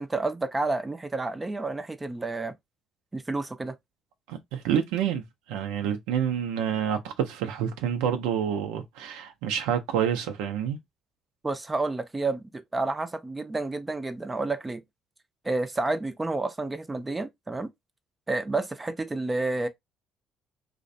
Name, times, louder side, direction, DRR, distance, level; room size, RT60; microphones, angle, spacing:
voice 1, 0.0-2.5 3.1-3.8 11.4-14.8 15.4-17.7 18.3-19.7, right 3 dB, 20° right, 0.4 m, -30 dB
voice 2, 4.3-10.8, right 9 dB, 85° right, 0.4 m, -28 dB
2.4 x 2.0 x 2.6 m
supercardioid pair, 65°, 0 cm